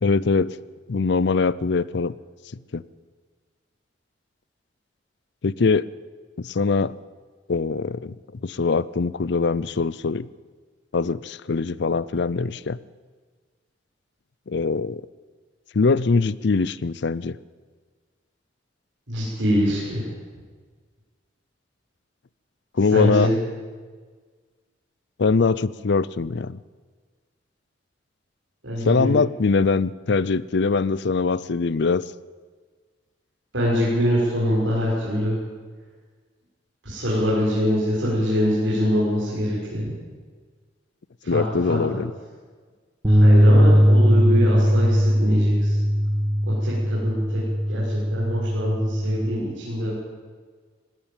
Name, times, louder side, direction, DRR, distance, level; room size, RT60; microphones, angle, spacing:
voice 1, 0.0-0.6 0.9-2.1 2.7-2.8 5.4-5.9 6.4-7.0 7.5-8.2 8.4-10.3 10.9-12.8 14.5-15.0 15.7-17.4 22.7-23.3 25.2-26.6 28.8-32.0 41.3-42.1, left 4 dB, 65° left, 20 dB, 0.5 m, -22 dB
voice 2, 19.1-20.1 22.9-23.3 28.6-29.2 33.5-35.3 36.8-39.9 41.2-42.0 43.0-45.8 46.4-50.0, equal, 80° right, -8 dB, 6.5 m, -24 dB
sound 1, 43.0-49.3, equal, 25° right, 2.7 m, -19 dB
19.5 x 16.0 x 9.1 m, 1.5 s
head